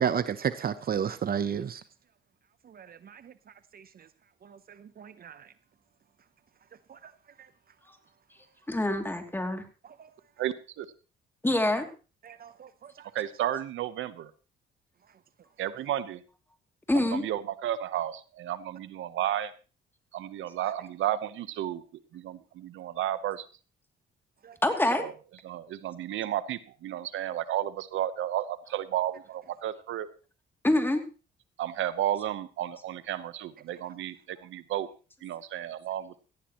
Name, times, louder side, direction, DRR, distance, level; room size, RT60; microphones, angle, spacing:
voice 1, 0.0-1.8 2.7-3.3 3.7-3.8 4.4-5.5 6.9-7.1 10.0-10.1 12.2-13.1 20.6-20.7 24.4-24.6, right 8 dB, 50° right, 0.8 m, -33 dB
voice 2, 8.7-9.6 11.4-11.9 16.9-17.2 24.6-25.0 30.6-31.0, left 1 dB, 10° left, 2.7 m, -25 dB
voice 3, 10.4-10.9 13.1-14.3 15.6-16.2 17.1-19.5 20.1-21.8 22.1-23.5 25.0-25.1 25.4-30.1 31.6-34.9 35.2-36.1, right 12 dB, 80° right, 1.0 m, -32 dB
17.5 x 15.0 x 3.1 m
cardioid pair, 90°, 20 cm